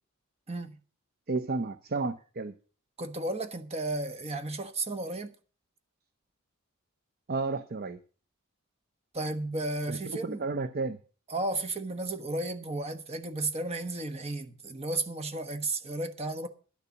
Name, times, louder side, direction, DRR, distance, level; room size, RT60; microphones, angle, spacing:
voice 1, 1.3-2.5 7.3-8.0 9.9-11.0, right 3 dB, 45° right, 0.6 m, -32 dB
voice 2, 3.0-5.3 9.1-10.4 11.3-16.5, right 2 dB, 30° right, 1.1 m, -33 dB
11.0 x 6.8 x 7.0 m
head